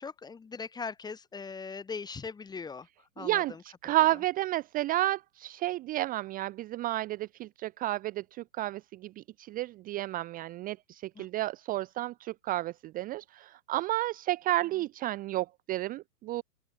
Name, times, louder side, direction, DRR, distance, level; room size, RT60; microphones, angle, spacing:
voice 1, 0.0-2.9 3.2-3.6 11.1-11.3, left 5 dB, 10° left, 1.4 m, -40 dB
voice 2, 3.2-16.4, right 16 dB, 20° right, 0.8 m, -31 dB
open air
hypercardioid pair, 130°, 47 cm